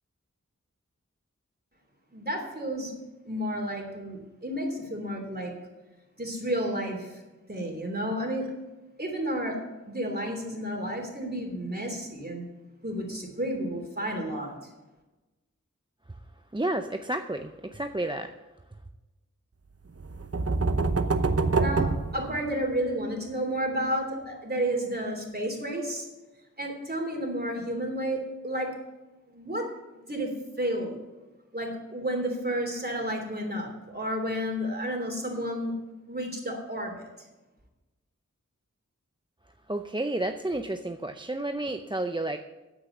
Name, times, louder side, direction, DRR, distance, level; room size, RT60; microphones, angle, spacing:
voice 1, 2.1-2.9 3.3-5.5 6.2-7.2 7.5-8.5 9.0-9.6 9.9-12.5 12.8-14.7 21.6-26.1 26.6-28.7 29.3-29.7 30.1-30.3 30.6-31.0 31.5-35.7 36.1-37.1, equal, 30° right, 1 dB, 3.1 m, -31 dB
voice 2, 16.5-18.3 39.7-42.4, right 1 dB, 15° right, 6 dB, 0.6 m, -31 dB
sound 1, 20.0-22.9, right 3 dB, 50° right, 0.9 m, -26 dB
9.6 x 8.4 x 7.9 m, 1.1 s
wide cardioid pair, 40°, 30 cm